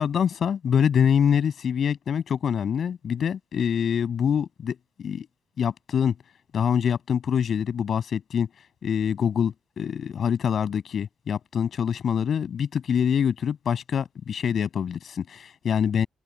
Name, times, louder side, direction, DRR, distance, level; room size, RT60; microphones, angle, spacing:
voice 1, 0.0-5.3 5.6-6.1 6.5-8.5 8.8-16.1, left 8 dB, 55° left, 7.5 m, -25 dB
open air
cardioid pair, 90°, 0 cm